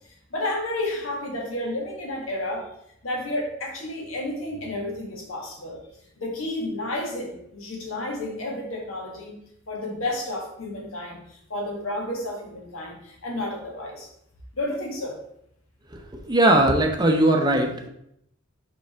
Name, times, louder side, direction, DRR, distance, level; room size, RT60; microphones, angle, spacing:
voice 1, 0.3-2.7 3.0-5.8 6.2-9.3 9.7-14.1 14.5-15.2, left 1 dB, 85° left, -1 dB, 1.7 m, -31 dB
voice 2, 15.9-17.9, right 1 dB, 20° right, 2 dB, 0.7 m, -20 dB
5.4 x 5.2 x 3.4 m, 0.75 s
head